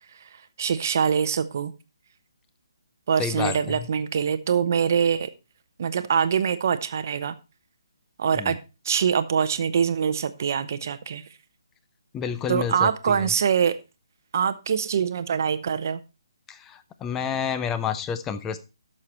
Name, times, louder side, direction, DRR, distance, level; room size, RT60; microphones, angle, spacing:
voice 1, 0.6-1.7 3.1-5.3 5.8-7.3 8.2-8.6 8.8-11.2 12.5-13.7 14.3-16.0, right 7 dB, 40° right, 0.8 m, -24 dB
voice 2, 3.2-3.9 8.4-8.5 12.1-13.3 16.5-18.6, left 7 dB, 10° left, 0.5 m, -29 dB
11.5 x 6.6 x 4.3 m
hypercardioid pair, 170°, 2 cm